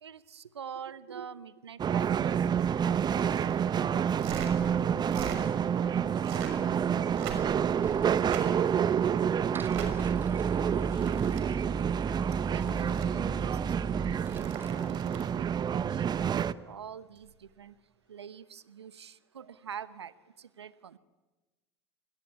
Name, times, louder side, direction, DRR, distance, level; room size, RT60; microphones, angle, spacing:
voice 1, 0.0-3.5 12.5-16.4 16.7-17.7 18.1-20.1 20.4-21.0, right 8 dB, 85° right, 16 dB, 1.0 m, -46 dB
sound 1, 1.8-16.5, right 8 dB, 30° right, 0.9 m, -28 dB
sound 2, 2.9-3.7 4.1-4.5 5.0-5.4 6.1-6.7 7.1-7.7 8.1-8.5 9.5-9.9 10.7-11.4 12.3-13.1 14.1-15.3 17.2-17.3, right 9 dB, 65° right, 6.1 m, -42 dB
voice 2, 4.7-7.7 8.2-11.8, left 6 dB, 35° left, 11 dB, 4.1 m, -54 dB
sound 3, 7.8-8.8 9.1-9.2 9.4-14.7, right 3 dB, 15° right, 1.3 m, -37 dB
27.0 x 22.0 x 9.7 m, 1.2 s
hypercardioid pair, 75°, 13 cm